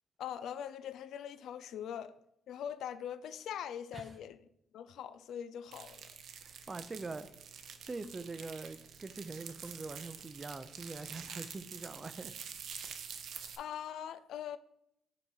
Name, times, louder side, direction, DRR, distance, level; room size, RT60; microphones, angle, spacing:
voice 1, 0.2-2.2 2.5-4.4 4.7-6.1 13.6-14.6, left 9 dB, 75° left, 0.3 m, -42 dB
sound 1, 5.7-13.6, right 7 dB, 70° right, 0.6 m, -47 dB
voice 2, 6.7-7.3 7.8-12.3, right 3 dB, 25° right, 0.5 m, -43 dB
5.6 x 4.0 x 4.7 m
cardioid pair, 90°, 0 cm